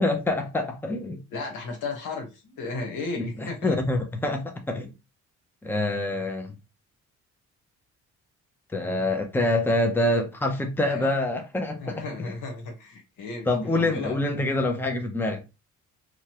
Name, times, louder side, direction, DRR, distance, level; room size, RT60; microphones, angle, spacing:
voice 1, 0.0-1.2 3.2-4.9 5.6-6.6 8.7-12.3 13.5-15.4, left 2 dB, 5° left, 0.7 m, -26 dB
voice 2, 1.3-3.8 10.9-11.2 11.8-14.2, left 3 dB, 80° left, 1.2 m, -34 dB
3.0 x 2.4 x 2.9 m
cardioid pair, 90°, 30 cm